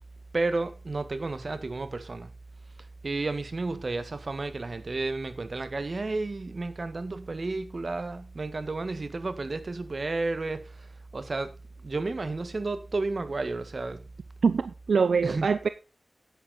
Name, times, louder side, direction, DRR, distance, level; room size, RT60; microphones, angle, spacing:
voice 1, 0.3-2.3 3.0-11.5 11.8-14.0 15.2-15.5, right 3 dB, 55° right, 1.5 m, -32 dB
voice 2, 14.4-15.7, right 5 dB, 85° right, 0.5 m, -24 dB
9.9 x 9.6 x 4.1 m
cardioid pair, 50°, 0 cm